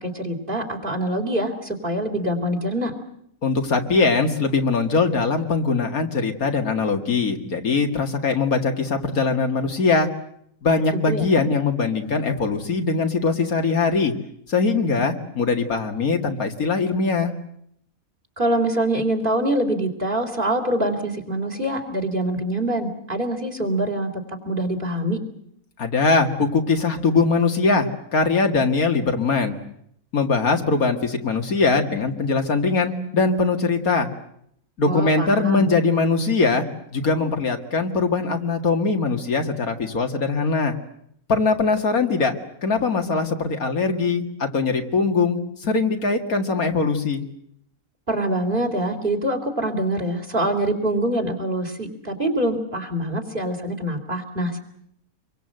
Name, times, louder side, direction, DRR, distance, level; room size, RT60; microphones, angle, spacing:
voice 1, 0.0-2.9 11.1-11.4 18.4-24.1 24.5-25.2 34.9-35.7 48.1-54.6, right 1 dB, 35° right, 7 dB, 3.8 m, -24 dB
voice 2, 3.4-10.1 10.6-14.1 14.5-17.3 25.8-29.5 30.1-34.1 34.8-36.6 36.9-40.7 41.3-42.4 42.6-45.4 45.6-47.2, left 4 dB, 75° left, 5 dB, 2.6 m, -21 dB
27.0 x 23.5 x 7.9 m, 0.72 s
omnidirectional pair, 1.5 m